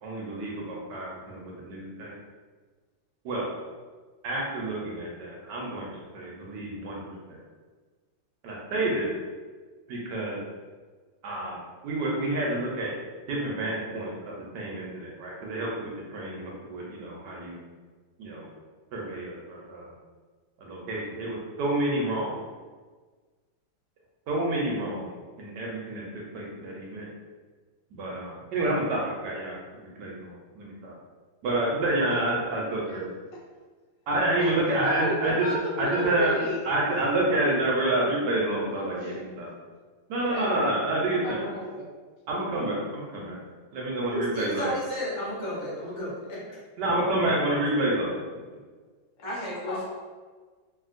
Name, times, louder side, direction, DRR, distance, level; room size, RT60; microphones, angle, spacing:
voice 1, 0.0-2.1 3.2-3.5 4.2-7.4 8.4-9.1 9.9-10.4 11.2-11.6 11.8-12.9 13.3-17.6 18.2-18.5 18.9-19.9 20.6-22.4 24.3-27.1 27.9-30.9 31.4-33.1 34.1-35.5 35.8-36.3 36.6-39.5 40.1-41.4 42.3-43.4 43.7-44.7 46.8-48.1, right 1 dB, 70° right, -3 dB, 1.2 m, -29 dB
voice 2, 32.7-33.4 34.4-36.6 38.6-39.2 40.1-40.5 41.1-41.9 49.5-49.8, equal, 80° left, -2 dB, 1.3 m, -34 dB
voice 3, 44.1-46.1 49.2-49.8, equal, 55° left, -7 dB, 1.1 m, -32 dB
2.9 x 2.8 x 2.4 m, 1.4 s
omnidirectional pair, 2.0 m